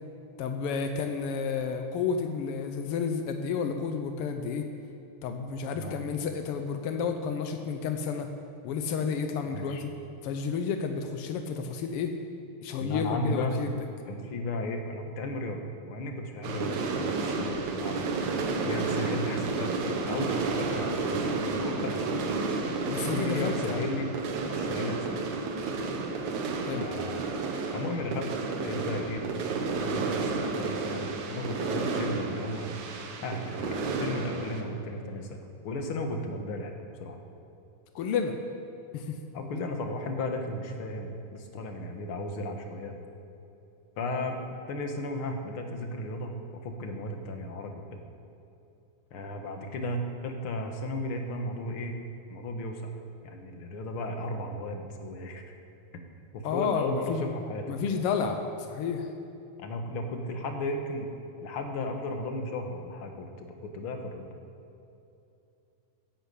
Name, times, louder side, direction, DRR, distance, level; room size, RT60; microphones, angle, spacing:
voice 1, 0.4-4.7 5.2-8.3 8.6-9.9 10.2-12.1 12.6-13.7 22.9-23.9 26.6-26.9 37.9-38.4 38.9-39.2 56.4-57.2 57.7-59.1, left 6 dB, 80° left, 6 dB, 1.3 m, -31 dB
voice 2, 9.5-9.8 12.8-13.6 14.1-18.2 18.6-22.2 23.1-24.1 24.5-25.2 26.7-27.2 27.7-28.4 28.6-32.8 33.2-36.7 37.0-37.2 39.3-42.9 44.0-46.4 46.6-47.9 49.1-52.0 52.3-52.9 53.2-55.4 56.3-57.8 59.6-61.1 61.4-64.3, left 1 dB, 55° left, 4 dB, 1.8 m, -35 dB
sound 1, 16.4-34.6, right 3 dB, 70° right, 2.6 m, -31 dB
15.5 x 10.5 x 8.4 m, 2.7 s
omnidirectional pair, 3.7 m